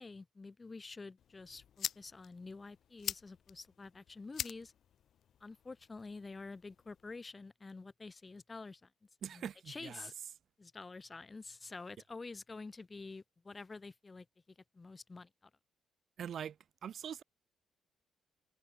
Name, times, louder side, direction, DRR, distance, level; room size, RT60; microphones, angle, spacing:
voice 1, 0.0-4.7 5.4-8.9 9.3-10.1 10.6-14.3 14.7-15.5, left 3 dB, 25° left, 1.9 m, -48 dB
sound 1, 1.2-7.2, left 9 dB, 65° left, 0.4 m, -46 dB
voice 2, 9.2-10.1 16.2-16.6 16.8-17.2, right 8 dB, 60° right, 0.8 m, -43 dB
cardioid pair, 90°, 0 cm